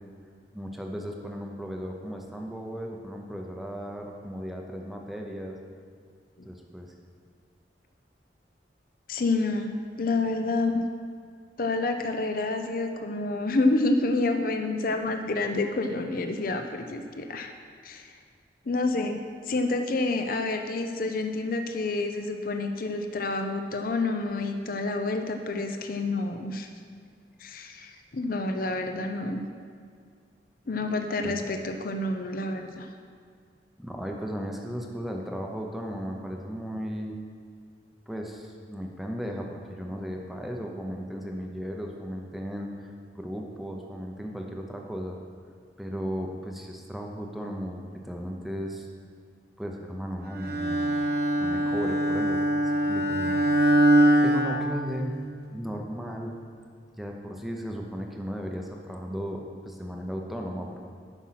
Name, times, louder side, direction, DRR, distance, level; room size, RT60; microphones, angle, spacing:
voice 1, 0.5-5.6 6.4-6.9 31.2-31.4 33.8-37.2 38.1-45.2 45.8-48.9 49.6-50.8 51.4-53.7 54.2-55.1 55.5-56.3 57.0-60.8, equal, ahead, 1 dB, 0.7 m, -36 dB
voice 2, 9.1-10.9 11.6-17.5 17.8-18.1 18.7-19.2 19.5-26.7 27.4-29.4 30.7-32.9, left 2 dB, 50° left, 6 dB, 0.6 m, -28 dB
Bowed string instrument, 50.4-55.4, right 1 dB, 55° right, 1.0 m, -23 dB
9.8 x 6.2 x 5.7 m, 2.1 s
head